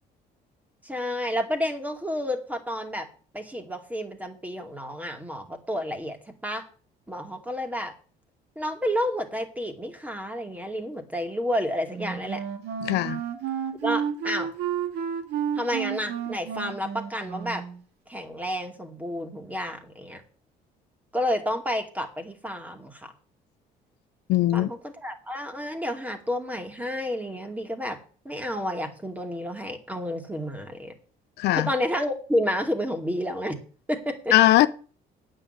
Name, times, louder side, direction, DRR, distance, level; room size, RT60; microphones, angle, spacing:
voice 1, 0.8-3.1 3.3-6.2 6.4-6.6 7.1-7.9 8.6-12.4 13.8-14.5 15.6-17.6 18.1-20.2 21.1-23.1 24.5-28.0 28.2-30.9 31.5-33.6 33.9-34.3, equal, 10° right, 2.3 m, -30 dB
Wind instrument woodwind instrument, 11.9-17.8, right 8 dB, 80° right, 2.3 m, -31 dB
voice 2, 12.8-13.2 24.3-24.7 31.4-31.7 34.3-34.7, left 15 dB, 80° left, 0.7 m, -20 dB
9.0 x 6.4 x 8.1 m
cardioid pair, 110°, 17 cm